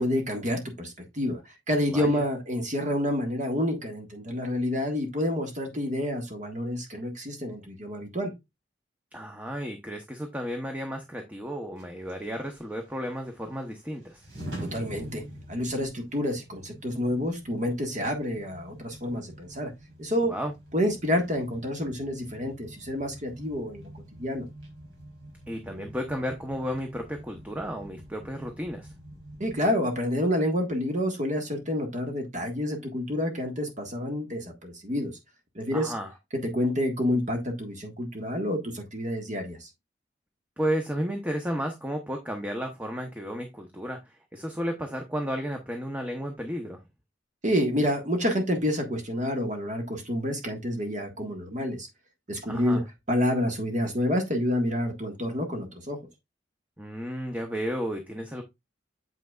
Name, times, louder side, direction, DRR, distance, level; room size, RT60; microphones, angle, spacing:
voice 1, 0.0-1.4 1.7-8.3 14.7-15.2 15.5-19.7 20.0-20.3 20.7-23.9 24.2-24.5 29.4-35.1 35.5-35.9 36.5-39.7 47.4-51.9 52.3-52.8 53.1-56.0, left 1 dB, 40° right, 1.6 m, -28 dB
voice 2, 1.9-2.2 9.1-14.3 20.2-20.5 25.5-28.9 35.7-36.1 40.6-46.8 52.5-52.8 56.8-58.4, equal, 10° right, 0.8 m, -33 dB
sound 1, 11.8-29.7, right 1 dB, 85° right, 3.6 m, -46 dB
7.7 x 5.9 x 2.4 m
head